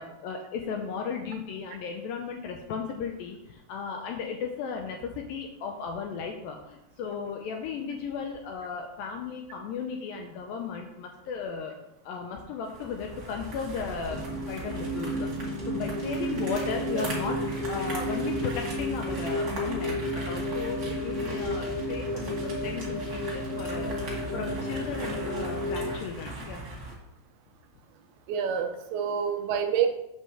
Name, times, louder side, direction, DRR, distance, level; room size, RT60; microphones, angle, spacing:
voice 1, 0.0-11.8 12.0-17.4 17.7-26.6, left 6 dB, 80° left, 3 dB, 2.1 m, -35 dB
sound 1, 12.6-26.9, right 2 dB, 40° right, 1.4 m, -39 dB
sound 2, 14.1-25.9, equal, 50° left, 2.2 m, -32 dB
voice 2, 28.3-29.9, right 7 dB, 80° right, 6 dB, 2.5 m, -27 dB
8.1 x 3.7 x 6.7 m, 0.86 s
omnidirectional pair, 4.7 m